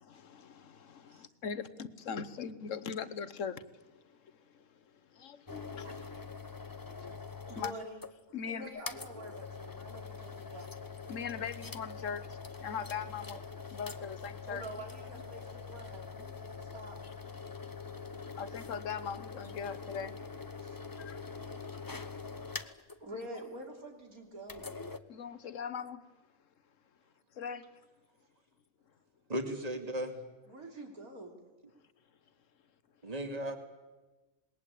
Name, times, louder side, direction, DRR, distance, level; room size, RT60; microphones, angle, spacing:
voice 1, 0.0-3.6 4.2-4.7 5.1-5.6 7.0-7.1 7.6-7.7 8.3-8.8 11.1-13.4 13.7-14.7 18.4-20.2 21.0-21.2 23.1-23.3 25.1-26.0 27.3-27.7, left 6 dB, 65° left, 14 dB, 1.4 m, -40 dB
sound 1, 5.5-8.1 8.4-8.5 8.9-23.0 24.4-25.0, left 5 dB, 20° left, 0.7 m, -44 dB
voice 2, 7.5-8.0 8.4-10.8 14.4-17.0 20.6-20.9 22.0-22.7 23.0-24.7 30.5-31.4, right 1 dB, 85° right, 3 dB, 4.0 m, -47 dB
voice 3, 29.3-30.2 33.0-33.6, equal, 25° right, 5 dB, 2.6 m, -35 dB
27.0 x 20.5 x 8.5 m, 1.2 s
omnidirectional pair, 1.5 m